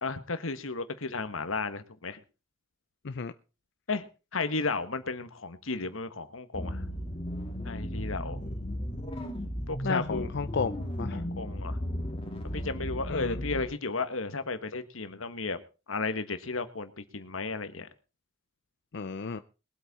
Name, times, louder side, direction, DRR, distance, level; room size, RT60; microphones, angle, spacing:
voice 1, 0.0-2.2 3.9-4.1 4.3-6.8 7.6-8.4 9.7-10.3 11.1-11.8 12.5-15.6 15.9-17.9, left 3 dB, 90° left, 1.5 m, -34 dB
sound 1, 6.5-13.6, equal, 30° left, 2.6 m, -35 dB
voice 2, 9.8-11.2 13.1-13.4 18.9-19.4, left 4 dB, 60° left, 0.6 m, -33 dB
21.5 x 8.4 x 4.2 m
head